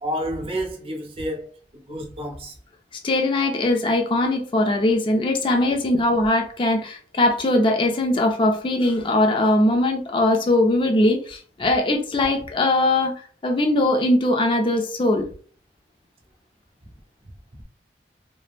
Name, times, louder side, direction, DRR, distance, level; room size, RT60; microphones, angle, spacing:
voice 1, 0.0-1.5 1.7-2.5, equal, 35° right, 0.6 m, -29 dB
voice 2, 3.0-13.1 13.4-15.3, left 1 dB, 30° left, 0.4 m, -20 dB
3.2 x 2.0 x 2.3 m
head